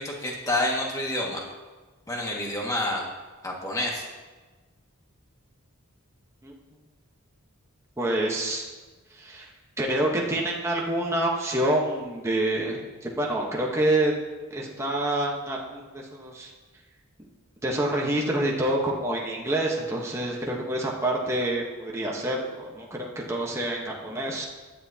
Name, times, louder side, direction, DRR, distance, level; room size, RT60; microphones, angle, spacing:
voice 1, 0.0-1.4 2.1-3.0 3.4-4.0, left 1 dB, 15° left, -2 dB, 1.9 m, -28 dB
voice 2, 8.0-8.7 9.1-9.5 9.8-14.1 14.5-16.5 17.6-24.5, right 1 dB, 15° right, -2 dB, 1.2 m, -27 dB
15.5 x 10.5 x 2.9 m, 1.3 s
head